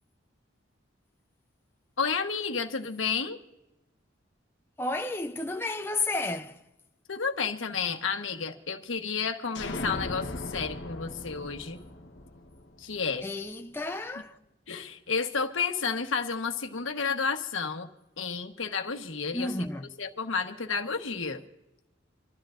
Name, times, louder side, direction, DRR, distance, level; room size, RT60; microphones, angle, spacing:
voice 1, 2.0-3.4 7.1-11.8 12.8-13.2 14.7-17.9 18.2-19.7 20.0-21.4, left 5 dB, 90° left, 1.2 m, -31 dB
voice 2, 4.8-6.6 13.2-14.4 19.3-19.9, left 2 dB, 10° left, 0.5 m, -32 dB
sound 1, 9.5-13.2, left 2 dB, 65° left, 1.1 m, -38 dB
27.0 x 13.0 x 2.5 m
head